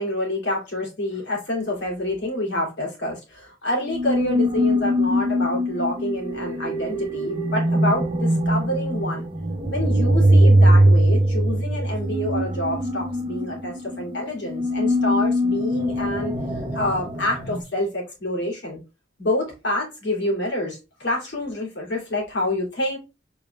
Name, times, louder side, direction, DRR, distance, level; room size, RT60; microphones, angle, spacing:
voice 1, 0.0-9.3 9.7-16.3 16.7-18.8 19.2-23.0, left 1 dB, 80° left, 2.9 m, -27 dB
sound 1, 3.8-17.6, equal, 30° right, 0.8 m, -21 dB
5.1 x 4.4 x 2.3 m
head